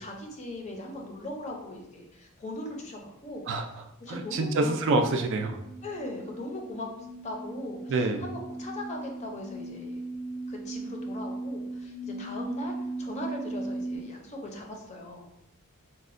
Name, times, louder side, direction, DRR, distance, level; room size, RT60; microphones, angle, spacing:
voice 1, 0.0-4.7 5.8-6.9 7.2-10.0 10.5-15.3, left 1 dB, 30° left, 1 dB, 0.5 m, -39 dB
voice 2, 4.1-5.6 7.9-8.2, right 2 dB, 55° right, 5 dB, 0.3 m, -26 dB
sound 1, 5.6-14.0, right 2 dB, 75° left, 0.5 m, -38 dB
4.0 x 2.1 x 2.4 m, 0.84 s
head